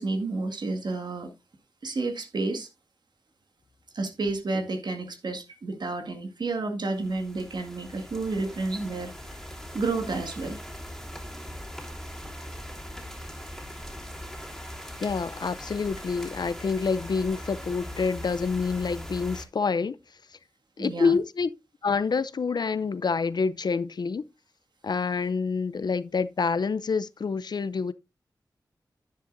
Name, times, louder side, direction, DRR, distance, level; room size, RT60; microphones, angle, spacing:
voice 1, 0.0-1.3 1.8-2.7 3.9-9.4 9.7-10.6 20.8-21.2, right 3 dB, 70° right, 2.0 m, -30 dB
sound 1, 6.9-19.5, equal, 5° left, 3.0 m, -40 dB
voice 2, 15.0-20.0 20.8-21.5 21.8-24.2 24.8-27.9, left 5 dB, 65° left, 0.6 m, -27 dB
10.5 x 10.0 x 2.6 m
cardioid pair, 55°, 8 cm